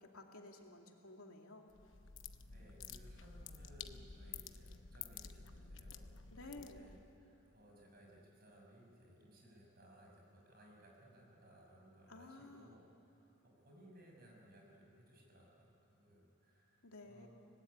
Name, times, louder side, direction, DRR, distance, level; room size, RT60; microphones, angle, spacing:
voice 1, 0.0-1.7 6.3-6.9 12.1-12.8 16.8-17.3, left 2 dB, 85° left, 2 dB, 2.5 m, -54 dB
sound 1, 1.7-7.1, left 6 dB, 60° left, 0.9 m, -51 dB
voice 2, 2.4-17.3, equal, 45° right, -1 dB, 6.0 m, -62 dB
24.5 x 19.0 x 9.6 m, 3.0 s
head